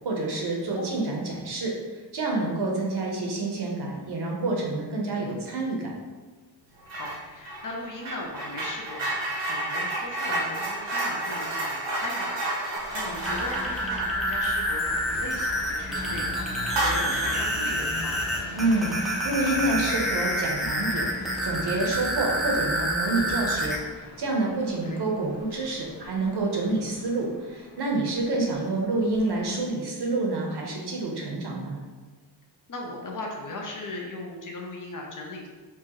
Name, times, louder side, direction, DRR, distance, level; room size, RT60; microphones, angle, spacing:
voice 1, 0.0-1.7 2.1-5.9 18.6-21.1 21.4-23.8 24.2-31.8, right 2 dB, 65° right, -1 dB, 0.8 m, -28 dB
sound 1, 6.9-7.2 7.4-15.6 16.0-16.1 16.6-17.5, right 1 dB, 85° right, 1.1 m, -31 dB
voice 2, 7.0-18.3 24.8-25.0 28.3-28.4 32.7-35.5, left 2 dB, 45° left, 0 dB, 0.6 m, -38 dB
sound 2, 12.7-29.7, left 2 dB, 90° left, 0.6 m, -44 dB
sound 3, 13.1-23.8, equal, ahead, 0.5 m, -28 dB
4.6 x 2.3 x 2.9 m, 1.4 s
wide cardioid pair, 125°, 43 cm